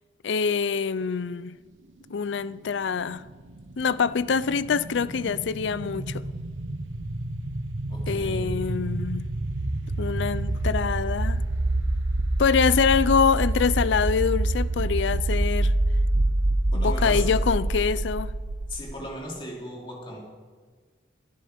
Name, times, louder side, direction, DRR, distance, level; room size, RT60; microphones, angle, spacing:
voice 1, 0.2-1.6 2.1-3.2 3.8-6.2 8.1-9.3 10.0-11.4 12.4-15.7 16.7-18.3, left 5 dB, 75° left, 0.4 m, -25 dB
sound 1, 2.9-18.8, right 1 dB, 85° right, 0.9 m, -27 dB
voice 2, 7.9-8.5 16.7-17.3 18.7-20.2, equal, 25° left, 3.1 m, -37 dB
22.5 x 9.8 x 5.2 m
head